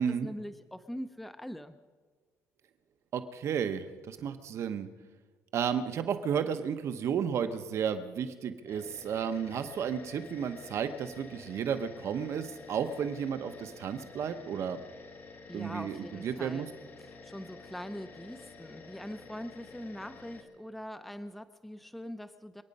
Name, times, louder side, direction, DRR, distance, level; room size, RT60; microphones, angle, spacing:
voice 1, 0.0-1.8 15.5-16.7 17.0-22.6, equal, ahead, 10 dB, 0.5 m, -42 dB
voice 2, 3.1-4.9 5.5-14.8 15.5-16.7, right 7 dB, 55° right, 9 dB, 0.9 m, -33 dB
sound 1, 8.6-20.4, left 4 dB, 35° left, 2.3 m, -50 dB
27.5 x 9.6 x 5.4 m, 1.5 s
cardioid pair, 135°, 6 cm